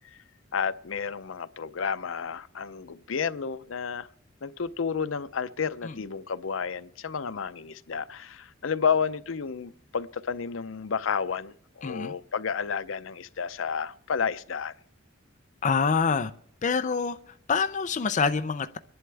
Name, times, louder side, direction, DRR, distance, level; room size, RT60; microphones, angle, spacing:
voice 1, 0.5-4.1 4.4-14.7, left 6 dB, 90° left, 0.6 m, -31 dB
voice 2, 11.8-12.1 15.6-16.3 16.6-17.2 17.5-18.8, left 5 dB, 40° left, 0.5 m, -26 dB
25.5 x 11.0 x 3.4 m
head